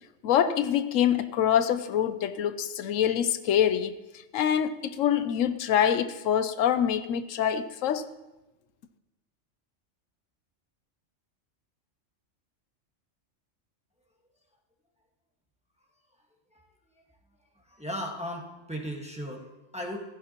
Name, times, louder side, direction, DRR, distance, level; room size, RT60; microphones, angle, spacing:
voice 1, 0.2-4.0 4.3-8.1, left 9 dB, 90° left, 1.0 m, -25 dB
voice 2, 17.5-20.0, equal, 5° right, 1.5 m, -37 dB
15.5 x 15.0 x 3.0 m
omnidirectional pair, 1.3 m